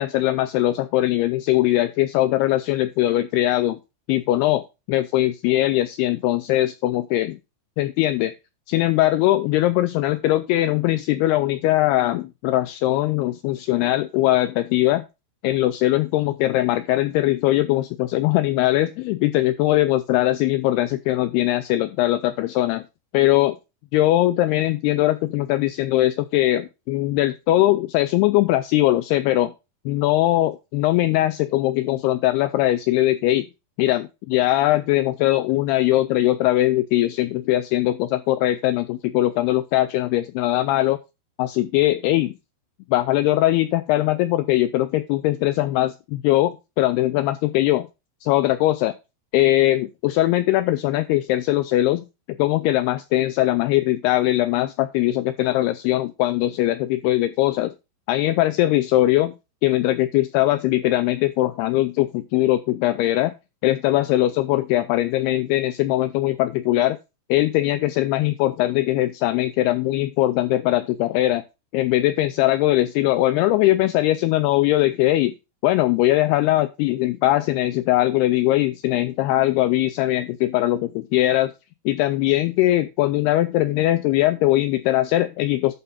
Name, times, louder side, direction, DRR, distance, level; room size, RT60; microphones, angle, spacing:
voice 1, 0.0-3.8 4.1-4.6 4.9-7.4 7.8-8.3 8.7-15.0 15.4-22.8 23.1-23.6 23.9-29.5 29.9-33.5 33.8-41.0 41.4-42.3 42.9-47.9 48.2-48.9 49.3-52.1 52.4-57.7 58.1-59.3 59.6-63.3 63.6-67.0 67.3-71.4 71.7-75.3 75.6-81.5 81.9-85.7, left 15 dB, 90° left, 12 dB, 2.2 m, -20 dB
11.5 x 3.8 x 5.6 m, 0.27 s
omnidirectional pair, 5.2 m